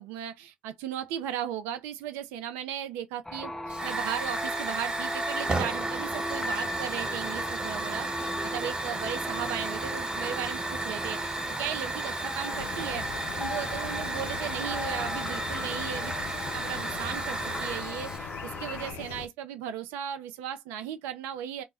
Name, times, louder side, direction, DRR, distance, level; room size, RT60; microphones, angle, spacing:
voice 1, 0.0-13.1 13.4-16.1 16.5-21.6, right 10 dB, 85° right, 0.4 m, -36 dB
sound 1, 3.2-18.9, left 1 dB, 15° left, 0.4 m, -38 dB
Hiss / Fire, 3.7-18.2, right 2 dB, 25° right, 1.3 m, -34 dB
sound 2, 12.5-19.3, left 8 dB, 80° left, 0.3 m, -41 dB
2.1 x 2.0 x 3.3 m
hypercardioid pair, 55°, 3 cm